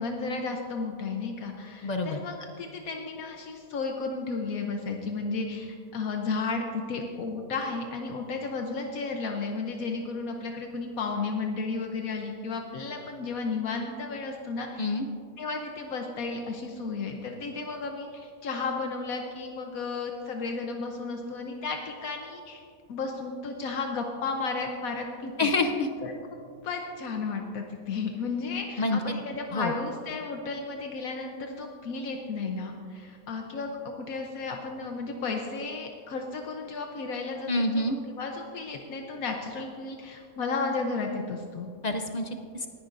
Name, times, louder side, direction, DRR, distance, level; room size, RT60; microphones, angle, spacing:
voice 1, 0.0-15.0 15.4-22.6 22.9-25.5 26.0-26.1 26.6-41.7, left 4 dB, 75° left, 2 dB, 1.3 m, -33 dB
voice 2, 1.8-2.2 14.8-15.0 25.4-25.9 28.8-29.0 29.5-29.7 37.5-38.0 41.8-42.7, left 2 dB, 50° left, 5 dB, 0.5 m, -27 dB
19.0 x 10.0 x 2.6 m, 2.3 s
omnidirectional pair, 1.5 m